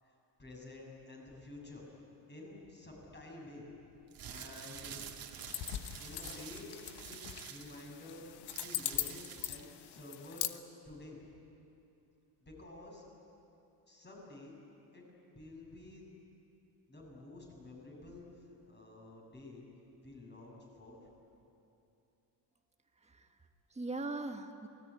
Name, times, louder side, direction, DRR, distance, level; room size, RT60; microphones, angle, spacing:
voice 1, 0.0-1.8 2.3-3.8 4.3-5.0 6.0-6.7 7.1-8.2 8.6-10.5 10.8-11.2 12.4-13.1 13.9-14.5 14.9-15.0 15.3-16.1 16.9-19.7 20.0-21.1, left 2 dB, 25° left, -1 dB, 7.6 m, -51 dB
sound 1, 4.0-9.7, right 8 dB, 55° right, 2.4 m, -48 dB
sound 2, 5.4-10.6, left 11 dB, 70° left, 1.3 m, -41 dB
voice 2, 23.0-24.7, right 2 dB, 15° right, 5 dB, 1.6 m, -41 dB
27.5 x 20.5 x 9.9 m, 2.8 s
cardioid pair, 140°, 41 cm